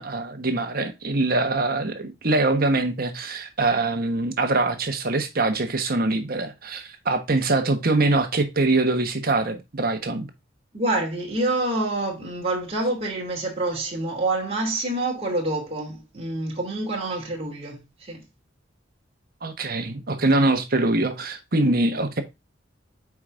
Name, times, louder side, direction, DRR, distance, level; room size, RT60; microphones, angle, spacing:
voice 1, 0.0-10.3 19.4-22.2, right 2 dB, 50° right, 1.2 m, -23 dB
voice 2, 10.7-18.3, right 2 dB, 30° right, 2.8 m, -27 dB
7.9 x 4.9 x 2.5 m
head